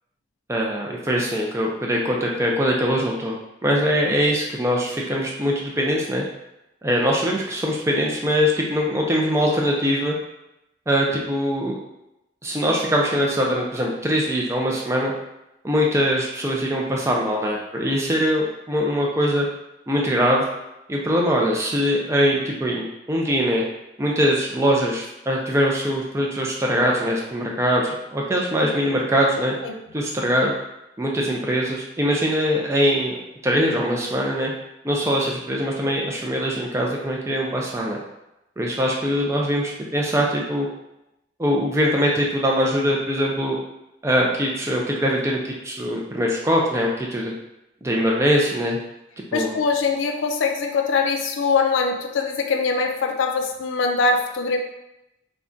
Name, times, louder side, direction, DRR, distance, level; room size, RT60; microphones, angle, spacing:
voice 1, 0.5-3.4 3.6-6.2 6.8-10.2 10.9-11.8 12.4-15.1 15.6-19.5 19.9-20.4 20.9-23.6 24.0-29.5 29.9-30.5 31.0-33.2 33.4-34.5 34.8-38.0 38.6-40.7 41.4-43.6 44.0-45.4 45.6-47.3 47.8-48.8 49.3-49.6, equal, 15° right, -2 dB, 0.3 m, -22 dB
voice 2, 49.3-54.6, left 4 dB, 90° left, 4 dB, 0.4 m, -22 dB
2.6 x 2.2 x 3.6 m, 0.90 s
head